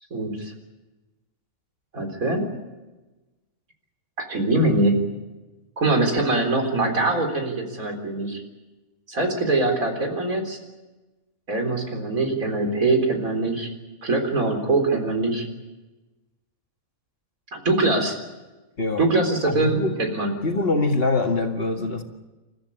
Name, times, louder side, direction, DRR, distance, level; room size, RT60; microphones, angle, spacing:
voice 1, 0.1-0.5 1.9-2.5 4.3-5.0 5.8-8.4 9.1-10.6 11.5-13.7 14.0-15.5 17.5-18.2 19.0-20.3, right 2 dB, 75° right, 4 dB, 4.4 m, -23 dB
voice 2, 19.4-20.0 20.4-22.0, left 3 dB, 40° left, 3 dB, 2.1 m, -23 dB
29.0 x 14.0 x 9.8 m, 1.1 s
omnidirectional pair, 1.5 m